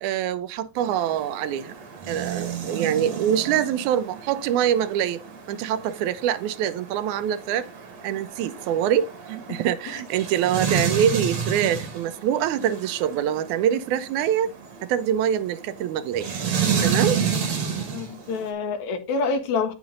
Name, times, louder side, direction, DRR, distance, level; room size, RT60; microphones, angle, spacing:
voice 1, 0.0-1.7 2.1-5.2 5.5-7.7 8.0-14.5 14.8-16.3 16.8-17.2, right 10 dB, 85° right, 2.1 m, -24 dB
sound 1, 0.8-18.5, right 6 dB, 65° right, 2.9 m, -31 dB
voice 2, 17.9-19.7, left 4 dB, 75° left, 2.4 m, -27 dB
8.9 x 6.0 x 3.8 m
omnidirectional pair, 3.4 m